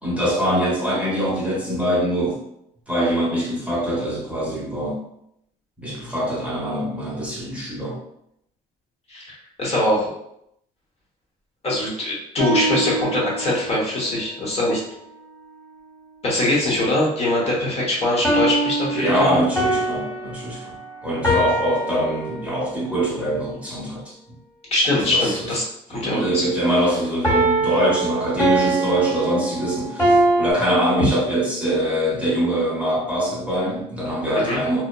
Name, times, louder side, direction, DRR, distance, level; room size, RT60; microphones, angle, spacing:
voice 1, 0.0-2.4 2.9-5.0 5.8-8.0 18.9-20.8 21.0-24.1 25.0-25.6 25.9-34.8, right 1 dB, 10° right, -7 dB, 0.8 m, -23 dB
voice 2, 9.1-10.1 11.6-14.8 16.2-19.4 24.7-25.6 25.9-26.4 34.3-34.6, left 1 dB, 35° left, -4 dB, 1.0 m, -22 dB
sound 1, 12.4-13.8 18.2-22.8 27.2-30.5, right 2 dB, 15° left, 1.2 m, -23 dB
2.7 x 2.1 x 2.2 m, 0.75 s
cardioid pair, 110°, 17 cm